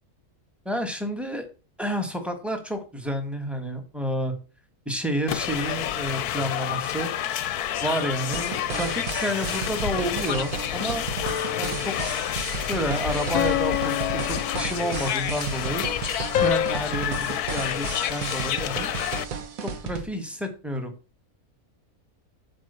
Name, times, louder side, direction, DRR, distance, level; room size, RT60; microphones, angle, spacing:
voice 1, 0.6-1.5 1.8-4.3 4.8-7.1 7.8-11.1 11.6-11.9 12.6-15.9 16.4-18.9 19.6-20.9, equal, ahead, 6 dB, 1.5 m, -30 dB
sound 1, 5.3-19.2, left 11 dB, 85° left, 1.2 m, -29 dB
sound 2, 8.3-20.0, right 6 dB, 65° right, 1.5 m, -34 dB
sound 3, 11.2-12.2 13.3-15.2 16.3-16.8, left 12 dB, 70° left, 1.0 m, -28 dB
7.7 x 5.1 x 6.9 m, 0.33 s
omnidirectional pair, 1.6 m